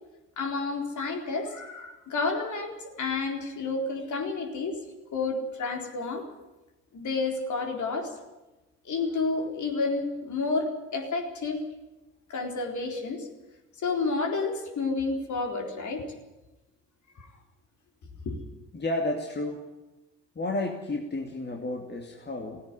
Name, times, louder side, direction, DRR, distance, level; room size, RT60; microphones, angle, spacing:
voice 1, 0.4-4.8 5.1-6.2 6.9-8.2 8.8-11.7 12.3-13.3 13.8-16.0 17.2-17.3 18.2-18.4, left 3 dB, 50° left, 2 dB, 4.1 m, -30 dB
voice 2, 18.7-19.6 20.3-22.6, left 2 dB, 25° left, 2 dB, 2.7 m, -31 dB
17.0 x 16.5 x 10.0 m, 1.0 s
figure-of-eight pair, 45°, 38 cm